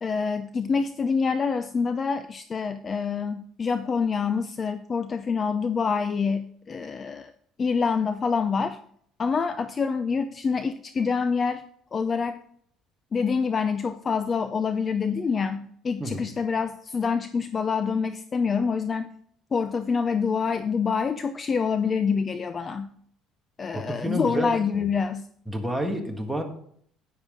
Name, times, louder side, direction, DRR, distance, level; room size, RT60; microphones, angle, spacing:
voice 1, 0.0-7.3 7.6-8.8 9.2-11.6 11.9-12.4 13.1-19.1 19.5-22.9 23.6-25.3, left 5 dB, 25° left, 11 dB, 0.4 m, -26 dB
voice 2, 23.7-24.8 25.5-26.4, equal, ahead, 2 dB, 1.5 m, -29 dB
9.8 x 9.0 x 3.7 m, 0.64 s
cardioid pair, 145°, 0 cm